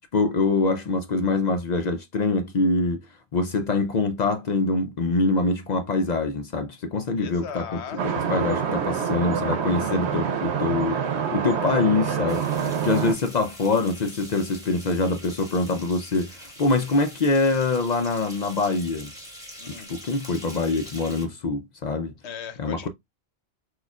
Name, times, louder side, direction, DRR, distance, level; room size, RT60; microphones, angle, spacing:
voice 1, 0.1-3.0 3.3-7.7 8.0-11.0 11.3-16.3 16.6-19.1 19.9-22.1 22.6-22.9, left 3 dB, 55° left, 0.5 m, -24 dB
voice 2, 7.2-8.3 9.9-10.3 19.6-19.9 22.2-22.9, left 7 dB, 90° left, 1.1 m, -38 dB
sound 1, 8.0-13.1, right 7 dB, 90° right, 1.0 m, -26 dB
sound 2, 12.3-21.3, equal, 5° right, 1.3 m, -44 dB
6.1 x 2.3 x 2.3 m
omnidirectional pair, 1.1 m